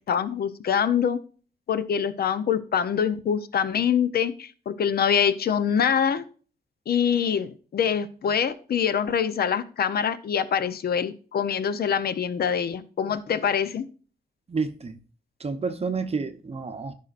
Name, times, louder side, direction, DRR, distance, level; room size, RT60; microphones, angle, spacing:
voice 1, 0.1-1.2 1.7-6.2 6.9-13.8, left 7 dB, 70° left, 0.7 m, -24 dB
voice 2, 14.5-15.0 15.4-16.9, right 4 dB, 40° right, 0.7 m, -29 dB
13.5 x 5.7 x 2.5 m
wide cardioid pair, 120°, 16 cm